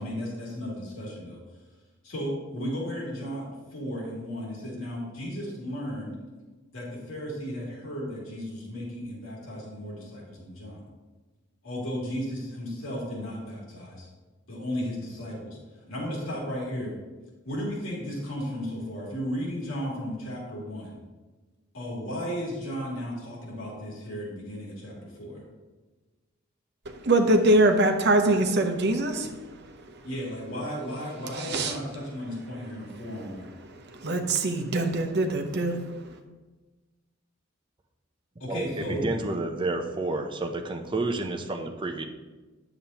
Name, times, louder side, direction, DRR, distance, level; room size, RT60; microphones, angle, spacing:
voice 1, 0.0-1.4 2.0-6.2 6.7-10.8 11.6-14.1 14.5-15.6 15.9-16.9 17.4-21.0 21.7-25.4 30.0-33.5 38.4-39.1, equal, 90° left, -4 dB, 2.5 m, -34 dB
voice 2, 27.0-29.4 31.4-31.8 34.0-35.8, right 1 dB, 55° right, 5 dB, 0.8 m, -23 dB
voice 3, 38.5-42.0, right 2 dB, 25° right, 4 dB, 0.6 m, -30 dB
9.3 x 6.9 x 2.9 m, 1.2 s
head